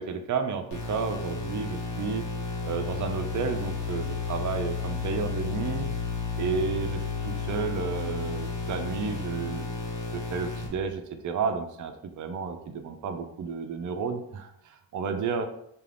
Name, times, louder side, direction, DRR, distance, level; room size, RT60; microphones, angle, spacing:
voice 1, 0.0-2.2 2.6-5.9 6.4-9.6 10.1-15.5, right 5 dB, 45° right, 6 dB, 0.5 m, -32 dB
sound 1, 0.7-10.7, left 4 dB, 65° left, 1.1 m, -32 dB
2.4 x 2.4 x 3.3 m, 0.73 s
cardioid pair, 45°, 45 cm